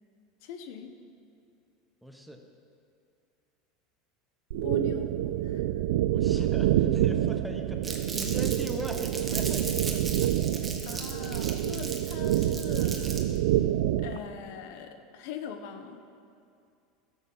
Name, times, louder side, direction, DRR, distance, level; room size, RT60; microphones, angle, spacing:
voice 1, 0.4-0.9 4.6-5.1 5.4-5.6 10.8-13.3 14.0-16.0, left 7 dB, 70° left, 7 dB, 0.8 m, -41 dB
voice 2, 2.0-2.4 6.1-10.3, equal, ahead, 3 dB, 1.0 m, -41 dB
sound 1, 4.5-14.2, right 12 dB, 80° right, 0.4 m, -27 dB
Crumpling crinkling, 7.8-13.4, right 3 dB, 15° right, 1.3 m, -38 dB
12.5 x 7.2 x 5.4 m, 2.4 s
supercardioid pair, 110°, 0 cm